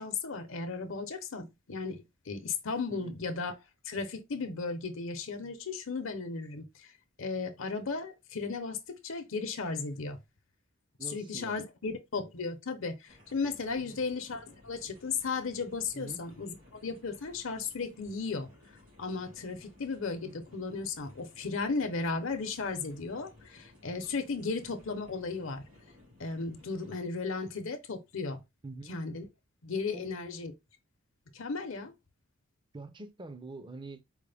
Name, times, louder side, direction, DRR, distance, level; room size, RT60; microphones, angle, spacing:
voice 1, 0.0-3.5 3.8-6.9 7.2-10.2 11.1-18.5 19.0-25.6 26.2-28.4 28.9-29.3 29.6-30.5 31.3-31.9, left 4 dB, 70° left, 0.7 m, -35 dB
voice 2, 11.0-11.6 13.8-14.1 15.9-16.2 28.6-28.9 29.9-30.1 32.7-34.0, right 3 dB, 25° right, 0.5 m, -45 dB
sound 1, 13.1-27.0, left 1 dB, 85° right, 2.7 m, -58 dB
4.7 x 2.1 x 3.4 m
head